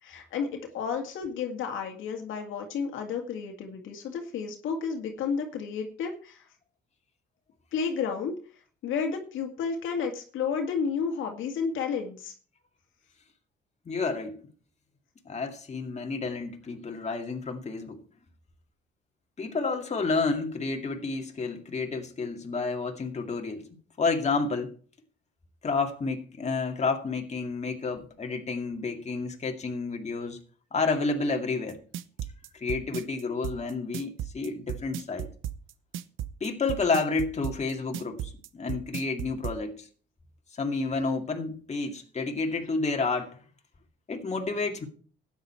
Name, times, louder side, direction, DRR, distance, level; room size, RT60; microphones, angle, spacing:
voice 1, 0.0-6.4 7.7-8.4 8.8-12.3, left 6 dB, 80° left, 2.1 m, -31 dB
voice 2, 13.9-14.4 15.3-18.0 19.4-23.7 24.0-24.7 25.6-30.4 30.7-31.8 32.5-35.3 36.4-39.9 40.5-43.4 44.1-44.9, left 4 dB, 35° left, 2.2 m, -30 dB
sound 1, 31.7-39.6, right 11 dB, 85° right, 0.8 m, -35 dB
13.0 x 9.5 x 4.4 m
cardioid pair, 90°, 20 cm